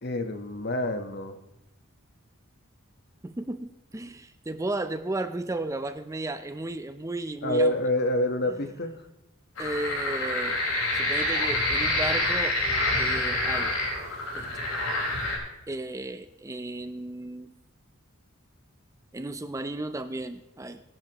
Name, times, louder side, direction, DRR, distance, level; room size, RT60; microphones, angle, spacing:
voice 1, 0.0-1.4 7.4-9.0, left 1 dB, 50° left, 7 dB, 1.2 m, -27 dB
voice 2, 3.2-7.9 9.6-10.6 10.9-12.6 13.0-13.7 14.3-14.5 15.7-17.5 19.1-20.8, right 2 dB, 15° right, 10 dB, 0.5 m, -34 dB
sound 1, 9.6-15.4, left 1 dB, 80° left, 4.9 m, -27 dB
20.5 x 11.0 x 3.0 m, 0.94 s
head